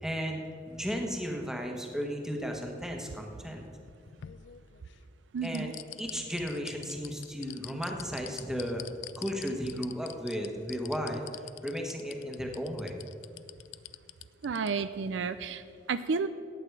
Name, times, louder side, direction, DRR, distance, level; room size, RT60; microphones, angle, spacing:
voice 1, 0.0-3.6 5.4-5.7 6.0-8.9 9.2-13.0, equal, 5° right, 1 dB, 1.3 m, -35 dB
sound 1, 3.7-5.0 5.4-14.7 15.0-15.1, left 14 dB, 70° left, 0.4 m, -45 dB
voice 2, 5.3-5.7 14.4-15.6 15.9-16.3, right 5 dB, 70° right, 12 dB, 0.4 m, -31 dB
14.5 x 9.3 x 4.7 m, 2.3 s
head